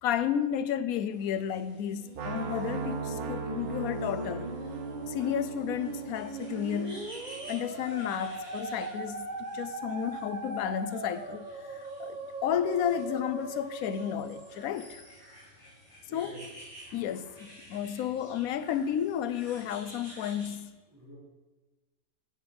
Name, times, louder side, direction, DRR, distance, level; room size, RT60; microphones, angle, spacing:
voice 1, 0.0-4.5 5.1-7.1 7.5-9.3 9.5-15.0 16.1-16.4 16.9-20.7, left 9 dB, 75° left, 1.1 m, -32 dB
sound 1, 1.1-20.5, equal, 30° left, 4.2 m, -53 dB
Musical instrument, 1.9-15.3, right 3 dB, 35° right, 1.0 m, -40 dB
sound 2, 2.1-8.1, right 4 dB, 80° right, 1.4 m, -39 dB
voice 2, 16.1-16.5 20.9-21.2, right 1 dB, 15° right, 3.9 m, -49 dB
7.8 x 7.7 x 6.8 m
omnidirectional pair, 1.5 m